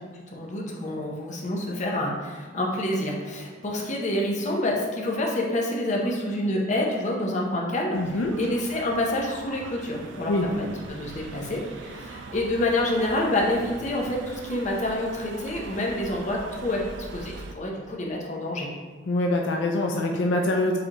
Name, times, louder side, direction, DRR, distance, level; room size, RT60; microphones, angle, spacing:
voice 1, 0.3-8.0 8.4-16.8 17.1-18.7, left 1 dB, 40° left, -1 dB, 0.7 m, -27 dB
voice 2, 7.9-8.3 10.3-10.5 19.1-20.8, left 2 dB, 75° left, 1 dB, 0.4 m, -24 dB
sound 1, 7.9-17.5, right 3 dB, 75° right, 0.3 m, -41 dB
4.8 x 3.3 x 2.9 m, 1.4 s
head